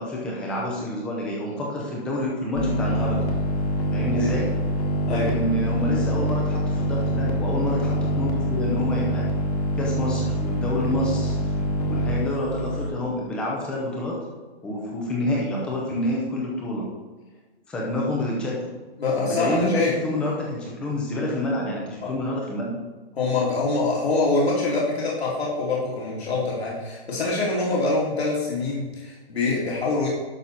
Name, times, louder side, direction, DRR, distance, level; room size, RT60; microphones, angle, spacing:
voice 1, 0.0-3.2 3.9-4.5 5.1-9.2 9.8-14.2 14.6-16.9 17.7-18.7 19.2-22.8, left 1 dB, 5° left, -3 dB, 0.5 m, -28 dB
sound 1, 2.6-12.9, equal, 40° left, 1.5 m, -25 dB
voice 2, 5.1-5.4 19.0-19.9 22.0-22.1 23.1-30.1, left 3 dB, 80° left, -5 dB, 3.0 m, -24 dB
11.5 x 6.1 x 4.0 m, 1.3 s
hypercardioid pair, 165°, 31 cm